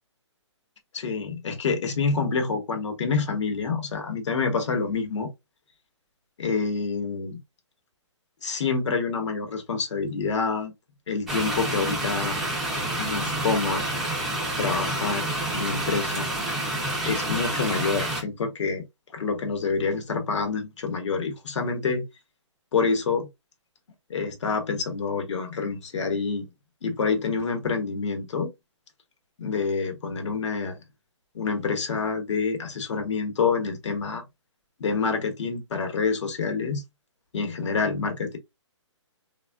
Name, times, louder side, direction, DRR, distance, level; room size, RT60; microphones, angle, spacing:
voice 1, 0.9-5.3 6.4-7.4 8.4-10.7 11.1-12.4 13.0-13.8 14.6-15.3 15.5-16.3 17.0-18.8 19.1-22.0 22.7-23.3 24.1-26.5 26.8-28.5 29.4-30.8 31.3-34.2 34.8-36.8 37.3-38.4, left 4 dB, 70° left, 1.0 m, -27 dB
sound 1, 11.3-18.2, right 1 dB, ahead, 0.3 m, -28 dB
3.4 x 2.3 x 2.2 m
hypercardioid pair, 155°, 16 cm